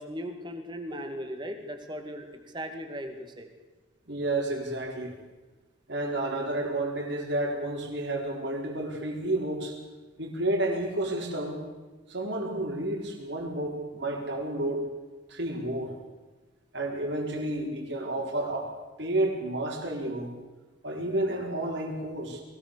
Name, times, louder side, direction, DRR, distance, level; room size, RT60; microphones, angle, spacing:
voice 1, 0.0-3.5, equal, 25° right, 5 dB, 2.3 m, -38 dB
voice 2, 4.1-5.2 5.9-9.7 10.2-11.6 12.1-14.9 15.3-15.9 16.7-18.7 19.0-20.3 20.8-22.4, right 1 dB, 65° right, 1 dB, 4.5 m, -31 dB
22.0 x 17.5 x 7.0 m, 1.2 s
head